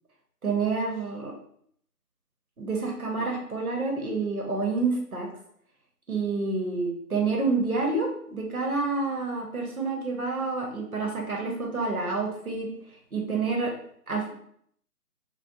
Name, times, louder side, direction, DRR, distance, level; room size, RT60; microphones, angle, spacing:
voice 1, 0.4-1.3 2.6-5.3 6.1-12.7 13.1-13.7 14.1-14.3, right 3 dB, 60° right, 0 dB, 1.0 m, -28 dB
2.6 x 2.3 x 3.7 m, 0.66 s
figure-of-eight pair, 175°, 48 cm